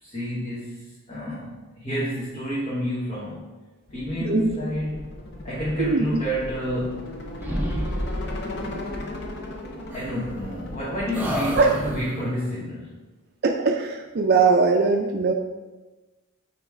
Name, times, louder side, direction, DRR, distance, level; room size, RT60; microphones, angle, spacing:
voice 1, 0.0-3.5 3.9-5.0 5.4-7.1 8.2-8.5 9.9-12.9, equal, 30° left, -8 dB, 1.2 m, -29 dB
sound 1, 3.9-12.0, left 1 dB, 50° left, 0.6 m, -37 dB
voice 2, 4.2-4.6 5.8-6.1 11.6-11.7 13.4-15.3, right 4 dB, 50° right, 2 dB, 0.4 m, -20 dB
sound 2, 6.3-7.1 7.4-8.6 9.9-10.8 11.1-12.4, equal, 10° right, 0.7 m, -31 dB
9.0 x 3.1 x 3.5 m, 1.2 s
head